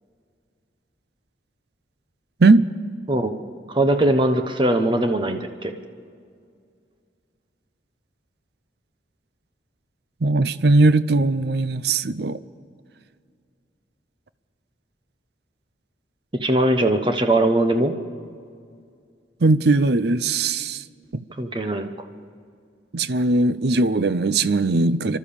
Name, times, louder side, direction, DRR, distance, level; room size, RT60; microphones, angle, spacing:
voice 1, 3.7-5.7 16.4-17.9 21.4-21.9, right 1 dB, 25° right, 7 dB, 1.0 m, -20 dB
voice 2, 10.2-12.4 19.4-20.8 21.1-21.2 22.9-25.2, right 2 dB, 60° right, 15 dB, 0.6 m, -19 dB
30.0 x 12.0 x 7.1 m, 2.3 s
head